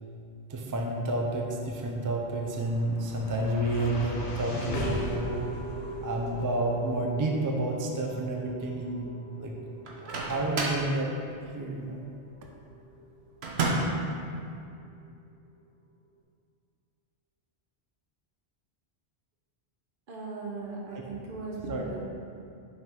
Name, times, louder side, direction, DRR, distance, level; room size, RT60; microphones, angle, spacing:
voice 1, 0.5-5.5 6.0-9.5 9.9-11.1 11.5-12.0 20.9-21.0 21.7-21.9, right 2 dB, 30° right, 0 dB, 0.3 m, -30 dB
sound 1, 2.2-14.5, left 1 dB, 80° left, 1.1 m, -39 dB
Microwave oven, 9.8-10.9 13.4-14.0, right 2 dB, 75° right, 1.1 m, -29 dB
voice 2, 20.1-22.0, right 3 dB, 55° right, -2 dB, 1.1 m, -38 dB
5.6 x 5.6 x 3.6 m, 2.5 s
omnidirectional pair, 1.1 m